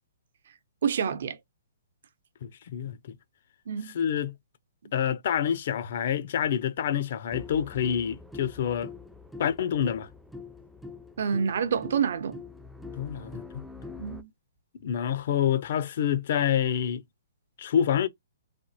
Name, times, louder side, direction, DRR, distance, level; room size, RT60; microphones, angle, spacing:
voice 1, 0.8-1.4 3.7-4.0 11.2-12.4 14.0-14.3, right 7 dB, 65° right, 0.6 m, -28 dB
voice 2, 2.4-3.2 3.9-4.4 4.9-8.9 9.4-10.1 13.0-13.6 14.8-17.0 17.6-18.1, left 9 dB, 55° left, 0.5 m, -27 dB
sound 1, 7.3-14.2, left 4 dB, ahead, 0.3 m, -44 dB
3.3 x 2.0 x 2.7 m
hypercardioid pair, 135°, 0 cm